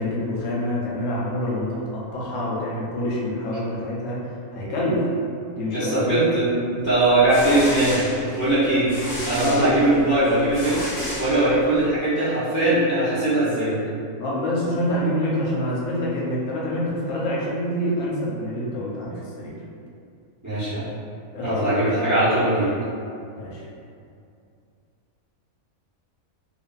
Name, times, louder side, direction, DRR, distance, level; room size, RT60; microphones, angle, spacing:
voice 1, 0.0-4.2 4.5-5.1 5.5-6.3 9.5-9.8 14.2-19.6 21.3-21.9 23.4-23.6, left 1 dB, 85° left, -5 dB, 1.1 m, -26 dB
voice 2, 5.7-8.0 8.4-8.9 9.3-10.9 11.2-13.7 20.4-20.9 21.4-22.7, right 1 dB, 25° right, -13 dB, 0.4 m, -20 dB
sound 1, 7.0-11.9, left 1 dB, 25° left, 0.9 m, -32 dB
2.5 x 2.5 x 2.2 m, 2.4 s
omnidirectional pair, 1.5 m